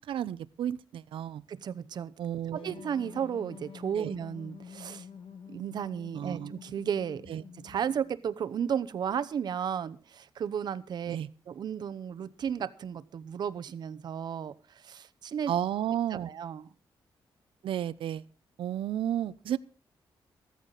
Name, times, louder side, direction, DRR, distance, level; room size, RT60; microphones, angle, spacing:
voice 1, 0.1-1.4 2.2-2.8 4.0-4.1 6.1-6.5 7.3-7.4 11.1-11.3 15.5-16.3 17.6-18.2 18.6-19.6, right 10 dB, 85° right, 17 dB, 0.7 m, -32 dB
voice 2, 1.5-2.1 2.5-5.1 5.5-7.3 7.6-11.2 11.5-15.5 16.1-16.7, right 8 dB, 55° right, 15 dB, 0.8 m, -34 dB
sound 1, 2.5-8.2, left 7 dB, 80° left, 2.0 m, -48 dB
15.0 x 14.0 x 4.0 m, 0.35 s
wide cardioid pair, 170°, 9 cm